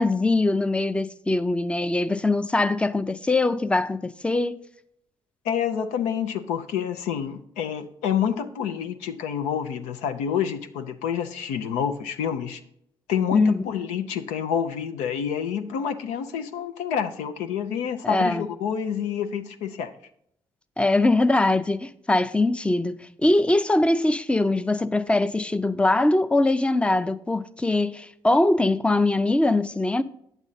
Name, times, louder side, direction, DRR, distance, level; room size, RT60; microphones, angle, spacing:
voice 1, 0.0-4.6 13.3-13.6 18.0-18.4 20.8-30.0, left 2 dB, 10° left, 0.5 m, -22 dB
voice 2, 5.4-12.6 13.1-19.9, left 8 dB, 85° left, 0.6 m, -28 dB
9.1 x 7.2 x 4.0 m
hypercardioid pair, 50°, 12 cm